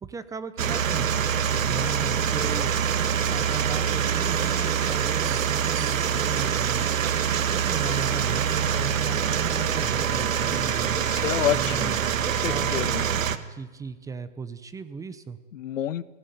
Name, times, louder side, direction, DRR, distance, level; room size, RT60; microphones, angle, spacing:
voice 1, 0.0-1.3 1.6-2.7 3.3-6.9 7.5-11.0 11.5-12.0 12.3-13.0 13.5-15.4, right 5 dB, 10° right, 13 dB, 0.7 m, -36 dB
sound 1, 0.6-13.4, right 8 dB, 85° right, 1.7 m, -25 dB
voice 2, 10.9-12.0 12.2-13.0 15.5-16.0, left 11 dB, 75° left, 17 dB, 1.2 m, -29 dB
21.0 x 17.0 x 9.3 m, 1.3 s
hypercardioid pair, 140°, 39 cm